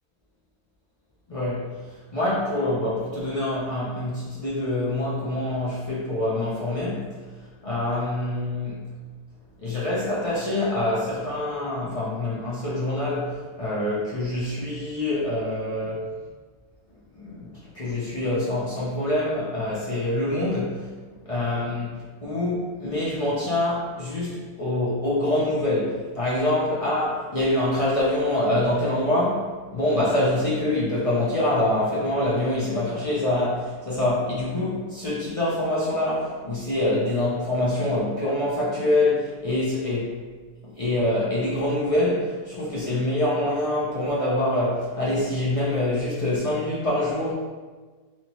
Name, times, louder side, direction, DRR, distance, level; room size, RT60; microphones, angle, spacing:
voice 1, 1.3-1.7 2.1-7.2 7.6-8.8 9.6-16.0 17.1-20.9 21.2-21.9 22.2-40.1 40.6-47.3, left 1 dB, 60° left, -8 dB, 0.3 m, -25 dB
3.3 x 2.8 x 2.9 m, 1.4 s
omnidirectional pair, 1.6 m